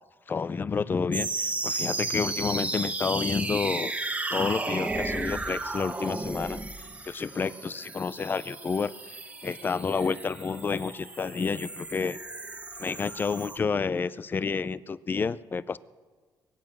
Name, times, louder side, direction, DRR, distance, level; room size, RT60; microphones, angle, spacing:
voice 1, 0.3-3.9 4.3-6.6 7.0-8.9 9.4-12.2 12.8-15.8, left 5 dB, 25° left, 18 dB, 0.4 m, -29 dB
sound 1, 1.1-13.6, right 2 dB, 15° right, 1.0 m, -34 dB
22.5 x 8.7 x 6.0 m, 1.4 s
cardioid pair, 140°, 8 cm